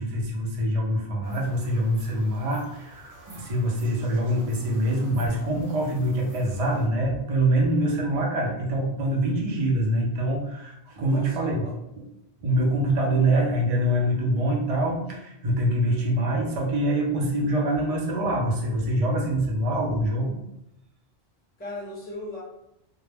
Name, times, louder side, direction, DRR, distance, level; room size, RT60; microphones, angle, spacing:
voice 1, 0.0-11.6 12.4-20.4, right 1 dB, 45° right, -2 dB, 0.5 m, -25 dB
sound 1, 1.2-6.9, right 1 dB, 70° right, 1.0 m, -50 dB
voice 2, 11.0-11.8 21.6-22.4, left 1 dB, 15° left, -4 dB, 0.4 m, -38 dB
2.1 x 2.0 x 3.2 m, 0.83 s
omnidirectional pair, 1.2 m